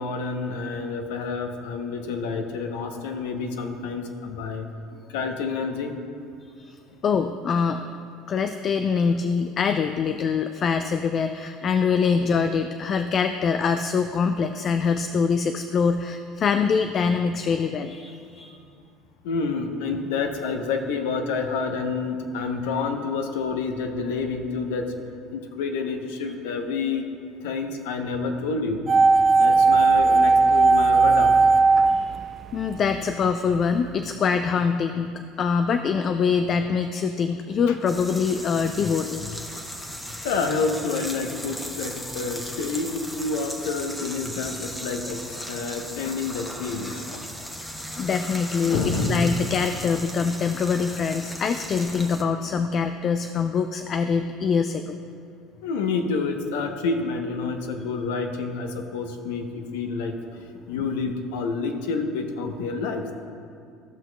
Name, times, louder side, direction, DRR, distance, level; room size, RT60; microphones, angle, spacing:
voice 1, 0.0-4.7 5.1-6.0 19.2-24.9 25.3-27.0 27.4-28.8 29.4-31.4 31.8-31.9 37.7-37.8 40.2-47.2 48.6-49.4 55.6-60.2 60.7-63.1, left 4 dB, 80° left, 5 dB, 0.7 m, -28 dB
voice 2, 7.0-7.8 8.3-18.6 31.9-32.1 32.5-39.4 47.6-55.0, left 5 dB, 45° left, 8 dB, 0.3 m, -24 dB
sound 1, 28.9-33.0 33.2-33.3, right 4 dB, 40° right, 0.4 m, -17 dB
sound 2, 37.9-52.2, equal, 10° left, 0.9 m, -37 dB
15.0 x 5.9 x 2.2 m, 2.5 s
hypercardioid pair, 80°, 0 cm